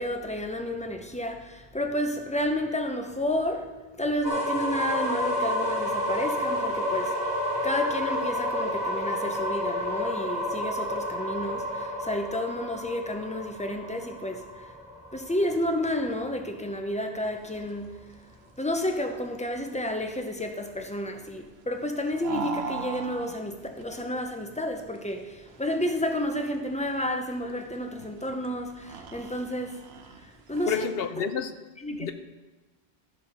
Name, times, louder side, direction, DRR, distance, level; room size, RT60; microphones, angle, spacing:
voice 1, 0.0-3.7 4.0-7.2 7.6-14.8 15.1-18.0 18.6-29.8 30.2-30.9 31.8-32.1, left 1 dB, 10° left, 0.6 m, -31 dB
sound 1, 4.2-16.0, left 1 dB, 40° right, 1.3 m, -30 dB
sound 2, 17.4-30.8, right 5 dB, 75° right, 1.0 m, -42 dB
voice 2, 30.7-31.5 31.9-32.1, left 7 dB, 70° left, 0.8 m, -29 dB
13.0 x 5.1 x 5.7 m
omnidirectional pair, 1.1 m